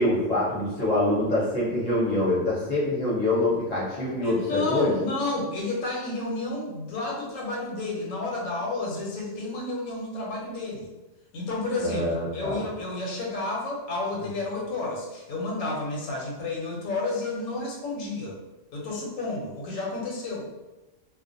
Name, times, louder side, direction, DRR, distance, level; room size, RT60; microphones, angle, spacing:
voice 1, 0.0-4.9 11.8-12.6, left 1 dB, 40° left, -7 dB, 0.7 m, -25 dB
voice 2, 4.2-10.9 11.3-12.0 12.3-18.4 18.7-20.5, left 2 dB, 80° left, -2 dB, 1.0 m, -31 dB
2.4 x 2.1 x 2.5 m, 1.1 s
omnidirectional pair, 1.3 m